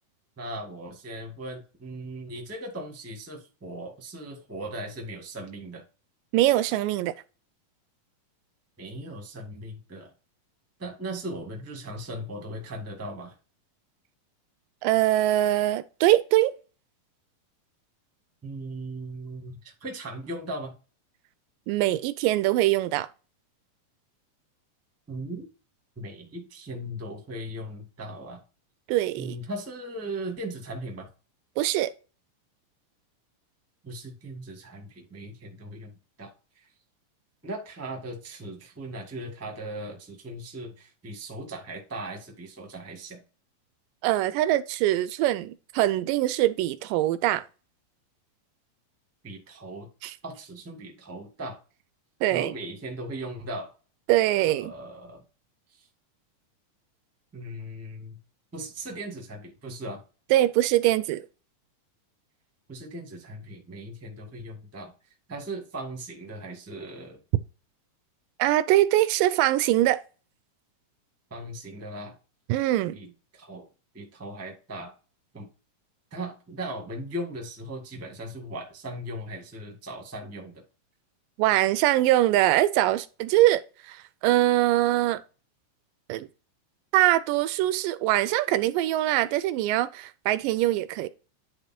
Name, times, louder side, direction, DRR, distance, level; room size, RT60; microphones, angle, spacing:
voice 1, 0.4-5.8 8.8-10.1 10.8-13.3 18.4-20.7 25.1-25.4 26.0-28.4 29.2-31.1 33.8-35.9 36.2-36.7 37.4-43.2 49.2-49.9 50.2-51.6 52.3-53.7 54.3-55.2 55.8-55.9 57.3-58.2 58.5-60.0 62.7-64.9 65.3-67.2 71.3-72.1 72.9-73.7 73.9-74.9 75.3-75.5 76.1-80.6, right 1 dB, 10° right, 0.7 m, -38 dB
voice 2, 6.3-7.1 14.8-16.5 21.7-23.1 28.9-29.4 31.6-31.9 44.0-47.4 50.0-50.1 52.2-52.5 54.1-54.7 60.3-61.2 68.4-70.0 72.5-73.0 81.4-83.6 83.9-84.0 84.2-85.2 86.1-86.3 86.9-91.1, right 15 dB, 85° right, 2.2 m, -23 dB
10.0 x 3.6 x 4.3 m
omnidirectional pair, 3.9 m